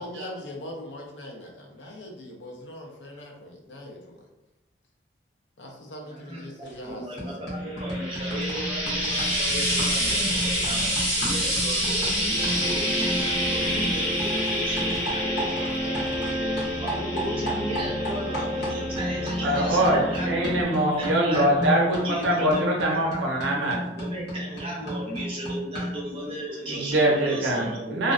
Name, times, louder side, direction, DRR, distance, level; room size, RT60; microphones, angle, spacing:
voice 1, 0.0-4.3 5.6-7.3 15.0-16.9, left 1 dB, 80° left, 1 dB, 0.5 m, -41 dB
voice 2, 6.0-6.4 6.9-15.5 16.8-20.3 21.0-23.3 23.9-28.1, right 1 dB, 30° right, -5 dB, 0.7 m, -34 dB
sound 1, 6.7-6.9 7.2-16.3 16.6-26.1, equal, 60° left, 0.9 m, -34 dB
Frying (food), 7.7-21.1 22.0-22.1, equal, 5° right, 1.0 m, -28 dB
sound 2, 12.3-20.6, equal, 10° left, 0.7 m, -31 dB
voice 3, 19.4-23.8 26.5-28.1, right 1 dB, 85° right, -2 dB, 0.6 m, -24 dB
2.5 x 2.1 x 2.3 m, 0.94 s
head